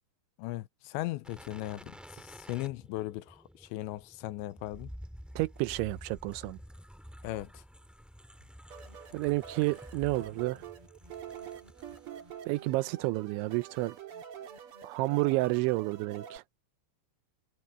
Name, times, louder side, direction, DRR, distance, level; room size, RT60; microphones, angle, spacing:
voice 1, 0.4-4.9 7.2-7.6, left 17 dB, 90° left, 3.0 m, -38 dB
sound 1, 1.2-12.5 12.8-12.9, equal, ahead, 0.5 m, -50 dB
voice 2, 5.4-6.6 9.1-10.6 12.5-14.0 14.8-16.4, right 21 dB, 90° right, 3.1 m, -30 dB
sound 2, 8.7-16.4, right 8 dB, 55° right, 1.5 m, -47 dB
omnidirectional pair, 5.2 m